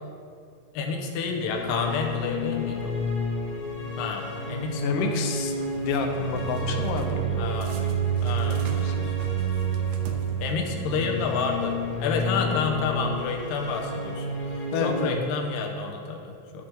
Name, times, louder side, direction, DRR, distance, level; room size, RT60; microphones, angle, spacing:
voice 1, 0.7-3.0 4.0-5.1 7.4-7.8 8.2-9.9 10.4-16.7, left 4 dB, 70° left, 1 dB, 1.9 m, -30 dB
sound 1, 1.3-15.1, right 2 dB, 45° left, 1.2 m, -30 dB
voice 2, 4.8-5.6 5.8-7.5 7.8-7.9 8.4-8.6 8.8-9.1 14.7-15.2, left 4 dB, 90° left, 4 dB, 2.8 m, -29 dB
sound 2, 5.4-6.0 6.4-7.2 7.6-10.8, right 3 dB, 75° right, 2.0 m, -43 dB
11.5 x 6.2 x 4.5 m, 2.3 s
omnidirectional pair, 4.4 m